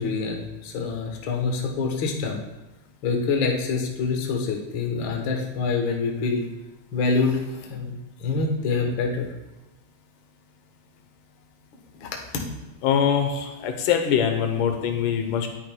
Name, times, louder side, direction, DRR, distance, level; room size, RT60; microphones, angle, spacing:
voice 1, 0.0-2.4 3.0-6.4 6.9-7.9 8.2-9.3 12.0-12.4, left 4 dB, 60° left, 0 dB, 1.3 m, -26 dB
voice 2, 12.8-15.6, left 8 dB, 80° left, 5 dB, 2.4 m, -23 dB
10.0 x 9.1 x 2.3 m, 1.0 s
omnidirectional pair, 3.7 m